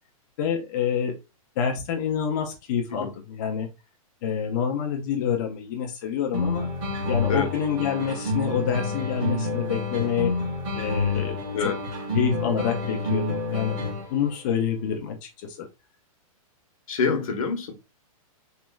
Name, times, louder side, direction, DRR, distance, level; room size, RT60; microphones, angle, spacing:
voice 1, 0.4-1.2 1.6-3.7 4.2-6.7 7.1-10.4 10.7-11.4 11.6-11.7 12.1-13.8 14.1-15.7, left 7 dB, 30° left, 0.4 m, -27 dB
sound 1, 6.3-14.3, left 3 dB, 25° right, 1.4 m, -28 dB
voice 2, 16.9-17.7, left 4 dB, 65° left, 0.8 m, -26 dB
3.1 x 2.3 x 2.2 m
hypercardioid pair, 165°, 19 cm